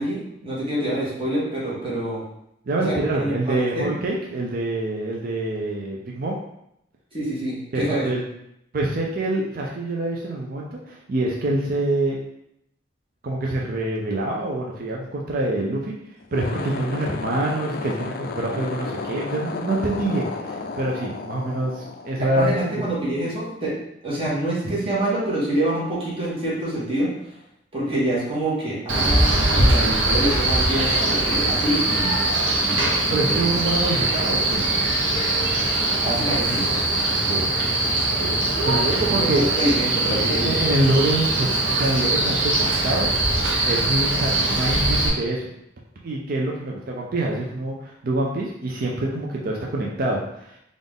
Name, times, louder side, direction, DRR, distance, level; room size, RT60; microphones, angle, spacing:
voice 1, 0.0-2.2 2.8-3.9 7.1-8.1 22.2-23.7 24.0-27.1 27.7-32.1 32.6-33.6 36.0-36.6 38.6-40.6, right 1 dB, 30° right, -6 dB, 1.3 m, -26 dB
voice 2, 2.7-6.4 7.7-8.2 8.7-12.2 13.2-15.9 16.3-22.5 32.8-34.7 37.1-37.5 38.2-38.4 38.7-39.5 40.1-43.1 43.6-45.5 46.0-50.6, right 2 dB, 50° right, -2 dB, 0.5 m, -26 dB
sound 1, 16.2-22.7, left 4 dB, 50° left, 0.4 m, -33 dB
Male speech man speaking, 28.9-45.1, right 2 dB, 85° right, 0.8 m, -22 dB
3.9 x 2.5 x 3.5 m, 0.77 s
head